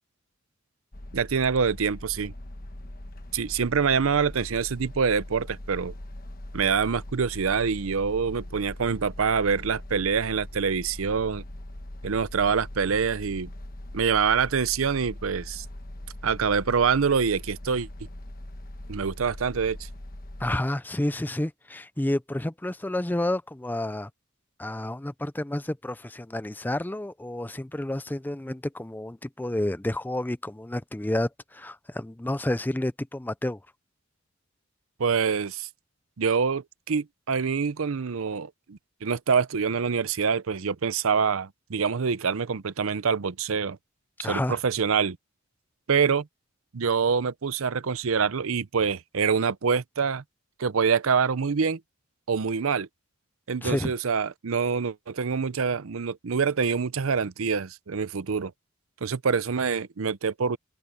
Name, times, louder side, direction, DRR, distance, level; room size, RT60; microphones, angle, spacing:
sound 1, 0.9-20.6, left 1 dB, 45° left, 1.3 m, -41 dB
voice 1, 1.1-2.3 3.3-5.9 6.5-11.4 12.0-13.5 13.9-15.6 16.2-17.9 18.9-19.9 35.0-35.7 36.2-43.8 44.2-45.2 45.9-46.3 46.7-50.2 50.6-51.8 52.3-52.9 53.5-58.5 59.0-60.6, right 6 dB, 75° right, 0.6 m, -25 dB
voice 2, 20.4-24.1 24.6-33.6 44.2-44.6 53.6-53.9, left 1 dB, 10° left, 0.4 m, -30 dB
head